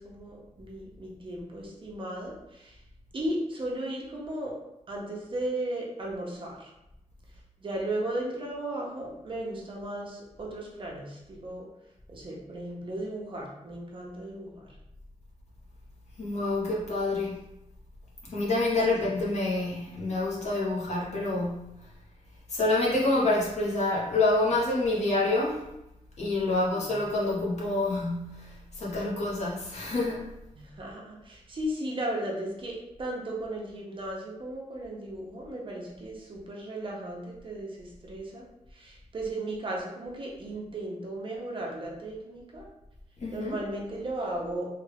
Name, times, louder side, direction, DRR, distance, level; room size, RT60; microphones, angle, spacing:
voice 1, 0.0-2.8 3.1-4.6 4.9-6.7 7.6-11.7 12.1-14.7 18.9-19.0 26.4-27.0 30.5-38.4 38.7-42.7 43.3-44.7, right 1 dB, 45° right, -2 dB, 0.7 m, -36 dB
voice 2, 16.2-17.4 18.2-21.9 22.5-25.7 26.2-30.3 43.2-43.6, left 2 dB, 65° left, -6 dB, 1.0 m, -27 dB
3.2 x 2.3 x 3.3 m, 0.89 s
wide cardioid pair, 160°, 12 cm